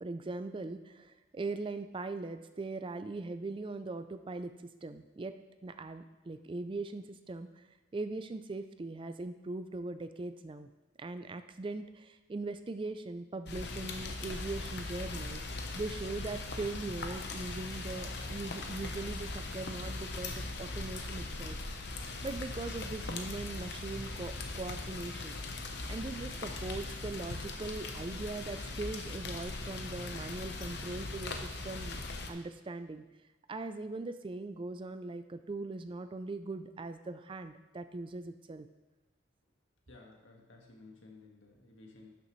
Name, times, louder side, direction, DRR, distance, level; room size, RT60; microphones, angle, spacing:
voice 1, 0.0-4.5 4.8-5.4 5.6-7.6 7.9-10.7 11.0-15.4 15.7-21.6 22.2-25.3 25.9-32.0 32.3-33.0 33.5-38.7, right 3 dB, 25° right, 10 dB, 0.4 m, -40 dB
Rain, 13.5-32.3, left 2 dB, 60° left, 0.9 m, -40 dB
voice 2, 39.9-42.1, left 3 dB, 80° left, 0 dB, 1.7 m, -55 dB
11.5 x 6.8 x 3.1 m, 1.1 s
head